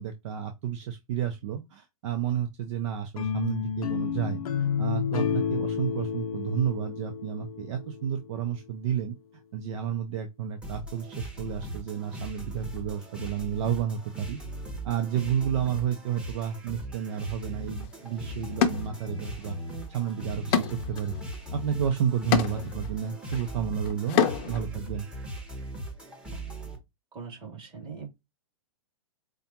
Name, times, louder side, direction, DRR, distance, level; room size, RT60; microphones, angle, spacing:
voice 1, 0.0-9.2 9.5-14.4 14.8-19.6 19.9-21.2 21.5-25.1, right 9 dB, 55° right, 0.7 m, -31 dB
sound 1, 3.2-8.3, left 7 dB, 80° left, 0.6 m, -30 dB
sound 2, 10.6-26.8, equal, 5° right, 1.1 m, -39 dB
sound 3, 17.8-17.9 18.6-19.5 19.9-24.7, left 7 dB, 35° left, 0.7 m, -29 dB
voice 2, 26.3-26.7 27.1-28.1, right 5 dB, 25° right, 2.5 m, -42 dB
5.0 x 2.3 x 2.9 m
hypercardioid pair, 135°, 18 cm